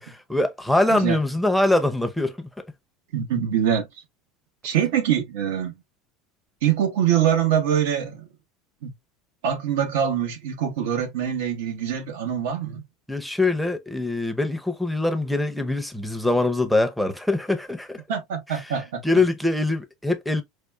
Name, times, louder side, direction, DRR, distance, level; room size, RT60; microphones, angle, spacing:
voice 1, 0.3-2.5 13.1-18.0 18.5-20.4, left 2 dB, ahead, 0.6 m, -23 dB
voice 2, 3.1-3.9 4.6-5.7 6.6-8.3 8.8-8.9 9.4-12.8 18.1-19.0, right 9 dB, 80° right, 1.0 m, -24 dB
4.8 x 2.3 x 2.2 m
supercardioid pair, 110°, 0 cm